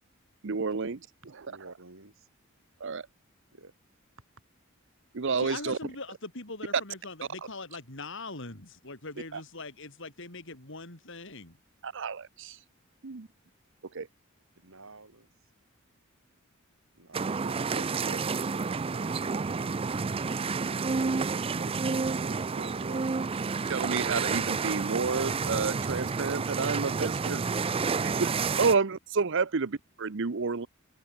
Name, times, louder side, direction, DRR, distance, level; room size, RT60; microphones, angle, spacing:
voice 1, 0.4-1.0 1.3-1.7 2.8-3.1 5.1-5.8 9.3-9.4 11.8-12.6 13.0-13.3 13.9-14.1 23.7-27.4 28.0-30.7, right 4 dB, 65° right, 0.8 m, -30 dB
voice 2, 1.5-2.3 3.5-3.7 14.6-15.3 16.9-19.8 20.1-23.4 28.7-28.8, right 2 dB, 80° right, 4.4 m, -49 dB
voice 3, 5.4-11.6, left 3 dB, 65° left, 5.6 m, -41 dB
sound 1, 17.1-28.7, right 4 dB, 25° right, 0.4 m, -30 dB
open air
head